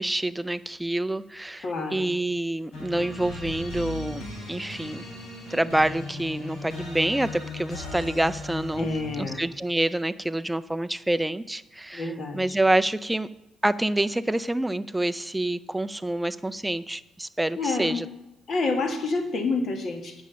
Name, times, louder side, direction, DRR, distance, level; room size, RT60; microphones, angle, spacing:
voice 1, 0.0-5.0 5.5-8.9 9.2-13.3 13.6-18.1, right 1 dB, 10° right, 13 dB, 0.4 m, -27 dB
voice 2, 1.6-2.1 8.8-9.4 11.9-12.6 17.6-18.0 18.5-20.2, left 3 dB, 55° left, 6 dB, 1.5 m, -28 dB
sound 1, 2.7-9.4, left 2 dB, 80° left, 3.4 m, -37 dB
8.3 x 6.2 x 6.8 m, 0.90 s
cardioid pair, 90°, 0 cm